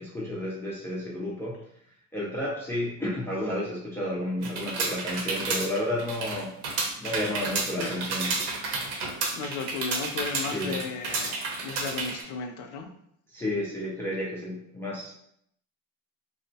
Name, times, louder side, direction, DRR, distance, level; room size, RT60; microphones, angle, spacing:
voice 1, 0.0-1.6 2.1-6.6 7.0-8.4 10.5-10.9 13.3-15.1, left 1 dB, 5° left, -6 dB, 0.4 m, -31 dB
sound 1, 4.4-12.2, right 3 dB, 80° right, 0.8 m, -31 dB
voice 2, 9.3-12.9, left 5 dB, 60° left, 4 dB, 0.6 m, -35 dB
2.7 x 2.1 x 2.7 m, 0.72 s
supercardioid pair, 115°, 35 cm